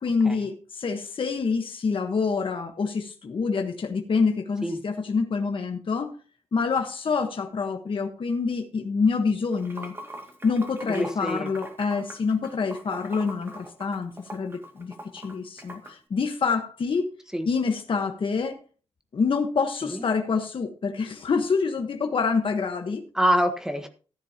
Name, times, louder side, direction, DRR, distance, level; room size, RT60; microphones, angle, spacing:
voice 1, 0.0-6.1 6.5-9.9 10.4-17.1 17.4-18.6 19.1-23.0, left 5 dB, 55° left, 4 dB, 1.3 m, -26 dB
Water / Sink (filling or washing), 9.4-15.9, right 1 dB, 20° right, 2.0 m, -41 dB
voice 2, 10.9-11.5 17.3-17.5 19.8-20.1 23.1-23.9, equal, 5° right, 6 dB, 1.4 m, -25 dB
15.0 x 10.0 x 2.9 m, 0.38 s
wide cardioid pair, 160°, 11 cm